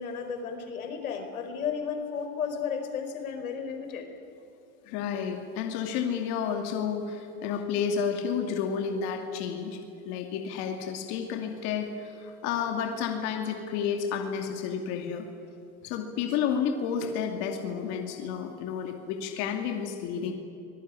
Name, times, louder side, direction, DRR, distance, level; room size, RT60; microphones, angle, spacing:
voice 1, 0.0-4.1 7.5-7.6, left 6 dB, 90° left, 6 dB, 4.9 m, -33 dB
voice 2, 4.9-9.8 10.1-15.3 15.8-20.3, left 7 dB, 40° left, 3 dB, 2.6 m, -31 dB
25.5 x 19.0 x 9.9 m, 2.6 s
supercardioid pair, 155°, 41 cm